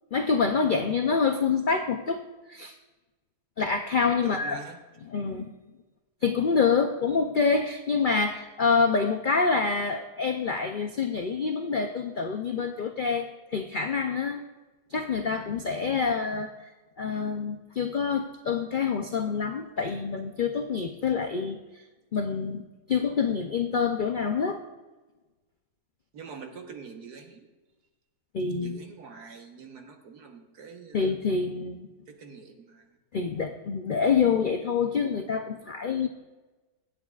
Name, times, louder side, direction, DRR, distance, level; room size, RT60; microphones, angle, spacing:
voice 1, 0.1-2.2 2.5-2.7 3.6-4.6 5.0-5.5 6.2-14.4 14.9-16.7 17.0-21.6 22.1-24.6 28.3-28.8 30.9-31.9 33.1-36.1, left 5 dB, 85° left, 5 dB, 0.4 m, -26 dB
voice 2, 4.2-4.8 26.1-27.5 28.6-31.1 32.1-32.9, right 4 dB, 80° right, 4 dB, 1.7 m, -44 dB
24.0 x 8.6 x 2.4 m, 1.2 s
omnidirectional pair, 1.7 m